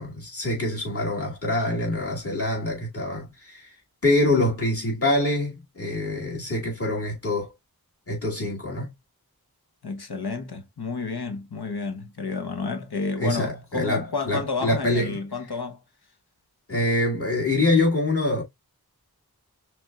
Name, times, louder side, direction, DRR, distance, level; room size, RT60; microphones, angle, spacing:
voice 1, 0.0-3.7 4.0-7.5 8.1-8.9 13.2-15.2 16.7-18.4, left 2 dB, 35° left, 2.4 m, -25 dB
voice 2, 9.8-15.8, left 4 dB, 85° left, 1.1 m, -30 dB
5.9 x 3.6 x 2.4 m
wide cardioid pair, 45°, 38 cm